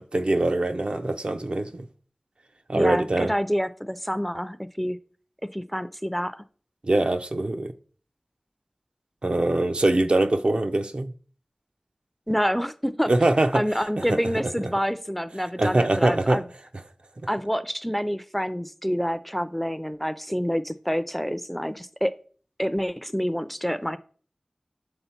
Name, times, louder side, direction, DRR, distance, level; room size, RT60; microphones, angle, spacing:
voice 1, 0.0-1.9 2.7-3.3 6.8-7.7 9.2-11.1 13.1-13.6 14.0-14.2 15.6-16.4 17.2-17.3, right 2 dB, 60° right, 0.5 m, -23 dB
voice 2, 2.7-5.0 5.4-6.4 12.3-13.1 13.5-16.4 17.3-22.1 22.6-24.0, equal, 5° left, 0.4 m, -27 dB
6.8 x 3.8 x 4.3 m
wide cardioid pair, 45°, 2 cm